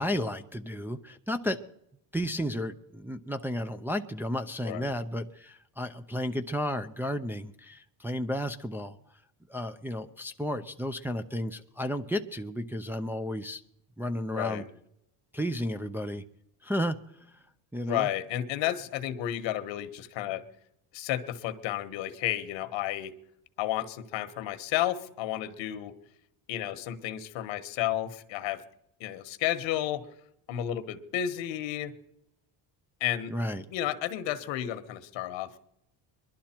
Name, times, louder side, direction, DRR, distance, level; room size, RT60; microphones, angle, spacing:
voice 1, 0.0-1.6 2.1-9.0 9.5-13.6 14.0-14.6 15.3-16.2 16.6-17.0 17.7-18.1 33.3-33.7, equal, 5° right, 4 dB, 0.4 m, -32 dB
voice 2, 14.3-14.6 17.8-20.4 20.9-23.1 23.6-25.9 26.5-28.6 29.0-30.0 30.5-31.9 33.0-33.3 33.7-35.6, left 12 dB, 80° left, 11 dB, 1.3 m, -32 dB
22.0 x 12.0 x 4.4 m, 0.79 s
cardioid pair, 130°, 45 cm